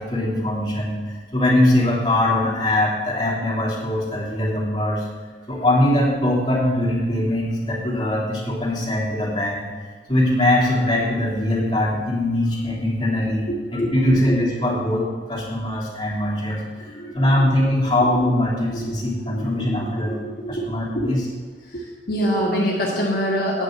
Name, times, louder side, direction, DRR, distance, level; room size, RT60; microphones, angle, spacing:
voice 1, 0.0-5.0 5.5-9.7 10.1-20.2 20.5-21.2, left 1 dB, 25° left, -5 dB, 3.0 m, -21 dB
voice 2, 19.2-21.1 21.7-23.6, equal, 55° left, -4 dB, 1.5 m, -26 dB
9.3 x 6.4 x 7.5 m, 1.4 s
head